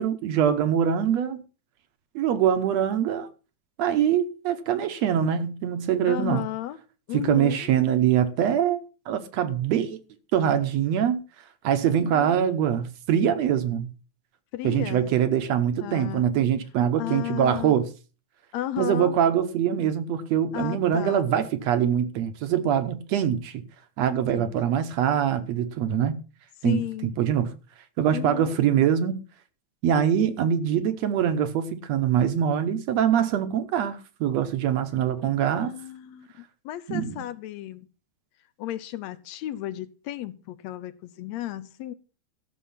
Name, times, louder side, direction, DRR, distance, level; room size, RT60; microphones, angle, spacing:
voice 1, 0.0-1.4 2.2-3.3 3.8-6.4 7.1-10.0 10.3-11.2 11.6-13.9 14.6-17.9 18.8-23.6 24.0-26.2 26.6-27.5 28.0-29.2 29.8-35.7 36.9-37.2, right 9 dB, 70° right, 2.1 m, -24 dB
voice 2, 6.1-6.8 7.1-7.7 11.8-12.4 14.5-15.1 15.8-16.3 17.0-17.7 18.5-19.2 20.5-21.2 24.3-24.6 26.6-27.1 28.1-28.6 35.6-37.9 38.6-41.9, left 13 dB, 75° left, 1.8 m, -34 dB
14.0 x 6.8 x 5.7 m
omnidirectional pair, 3.3 m